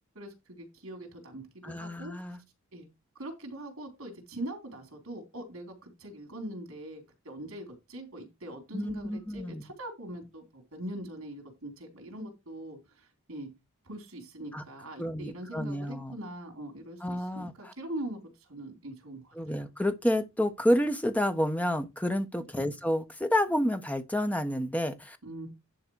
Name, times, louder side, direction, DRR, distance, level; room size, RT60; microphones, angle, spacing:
voice 1, 0.2-2.1 2.7-2.9 3.2-13.5 13.9-19.6 22.6-22.7 25.2-25.5, right 1 dB, 70° right, 3.5 m, -42 dB
voice 2, 1.6-2.4 8.7-9.6 14.5-14.6 15.0-16.2 17.0-17.7 19.3-25.2, equal, 5° left, 1.1 m, -29 dB
11.0 x 3.9 x 6.3 m
head